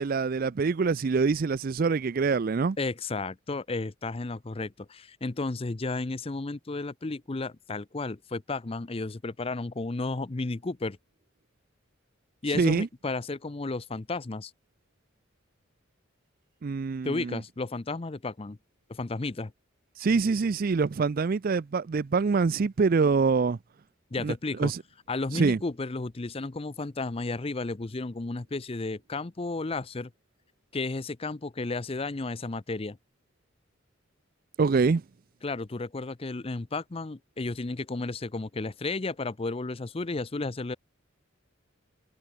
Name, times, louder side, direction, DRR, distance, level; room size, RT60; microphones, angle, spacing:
voice 1, 0.0-2.8 12.5-12.9 16.6-17.4 20.0-23.6 24.2-24.3 24.6-24.8 25.3-25.6 34.6-35.0, right 4 dB, 45° right, 0.4 m, -25 dB
voice 2, 2.8-11.0 12.4-14.5 17.0-18.6 18.9-19.5 24.1-24.7 25.1-30.1 30.7-33.0 35.4-40.8, left 3 dB, 30° left, 0.6 m, -33 dB
head